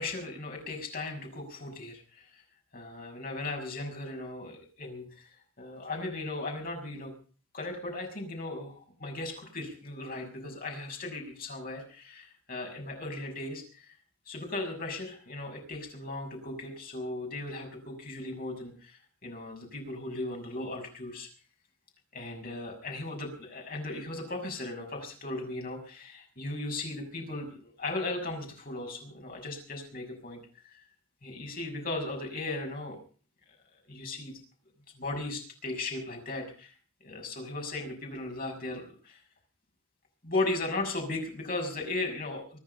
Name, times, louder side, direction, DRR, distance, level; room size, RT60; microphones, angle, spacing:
voice 1, 0.0-2.4 2.7-5.3 5.6-7.1 7.5-14.0 14.3-21.3 22.1-30.8 31.2-33.0 33.9-34.4 34.9-36.7 37.0-39.2 40.2-42.6, left 2 dB, 40° left, 2 dB, 6.5 m, -37 dB
25.0 x 10.0 x 5.4 m, 0.41 s
head